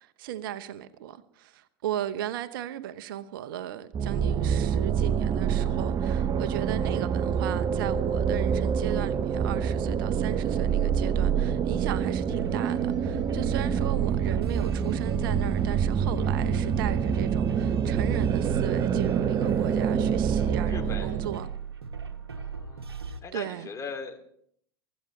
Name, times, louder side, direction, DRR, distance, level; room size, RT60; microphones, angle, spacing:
voice 1, 0.0-21.5 23.3-23.7, right 11 dB, 60° right, 0.9 m, -36 dB
sound 1, 3.9-21.4, right 7 dB, 30° right, 0.8 m, -26 dB
sound 2, 12.3-23.2, right 5 dB, 85° right, 1.2 m, -38 dB
voice 2, 20.6-21.3 22.4-22.9 23.2-24.2, left 5 dB, 25° left, 2.7 m, -39 dB
24.0 x 13.0 x 3.2 m
figure-of-eight pair, 85°, 13 cm